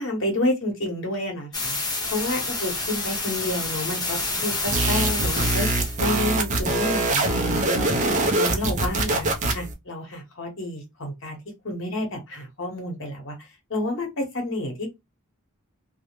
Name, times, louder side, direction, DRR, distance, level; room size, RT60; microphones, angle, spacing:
voice 1, 0.0-11.4 11.6-14.9, left 1 dB, 65° left, 0.9 m, -30 dB
sound 1, 1.5-6.0, left 2 dB, 20° left, 0.7 m, -28 dB
sound 2, 4.7-9.7, right 2 dB, 35° right, 0.5 m, -24 dB
2.2 x 2.0 x 2.9 m
head